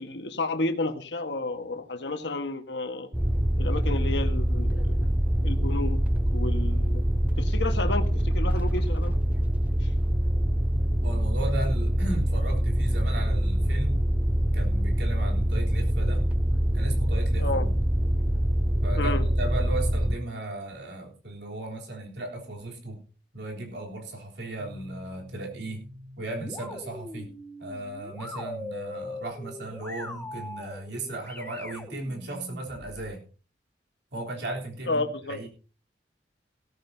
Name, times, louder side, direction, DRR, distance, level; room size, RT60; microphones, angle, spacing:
voice 1, 0.0-3.1 3.6-5.1 5.4-6.0 6.3-7.0 7.4-9.1 17.4-17.7 18.9-19.3 34.9-35.4, left 2 dB, 80° left, 7 dB, 1.5 m, -31 dB
sound 1, 3.1-20.2, equal, 10° right, 0.5 m, -24 dB
voice 2, 11.0-14.1 14.5-16.3 16.7-17.8 18.8-23.0 23.3-25.9 26.2-27.3 27.6-33.2 34.1-35.5, right 2 dB, 75° right, 0 dB, 3.6 m, -36 dB
sound 2, 24.6-33.2, left 1 dB, 10° left, 1.7 m, -42 dB
16.5 x 13.5 x 2.8 m, 0.34 s
head